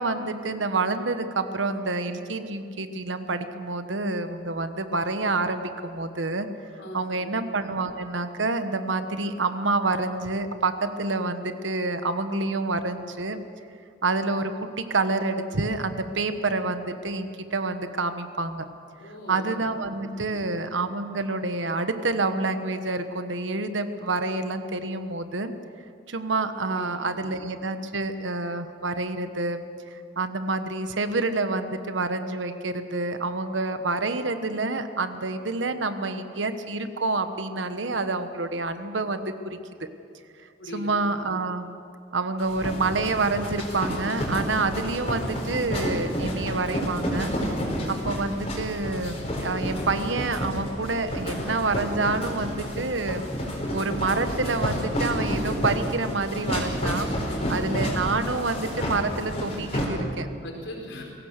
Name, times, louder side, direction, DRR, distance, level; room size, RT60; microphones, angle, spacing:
voice 1, 0.0-6.5 6.9-13.4 14.0-18.7 19.3-25.5 26.1-29.6 29.9-39.9 40.7-41.7 42.1-47.3 47.9-53.2 53.7-57.1 57.5-60.3, right 3 dB, 85° right, 9 dB, 1.3 m, -28 dB
voice 2, 6.8-7.4 19.0-19.5 20.3-20.4 26.7-26.9 27.2-27.3 40.6-40.9 57.3-57.6 60.4-61.0, left 1 dB, 90° left, -1 dB, 4.7 m, -39 dB
sound 1, 42.4-59.8, equal, 35° left, 4.5 m, -30 dB
23.0 x 17.5 x 6.6 m, 2.4 s
head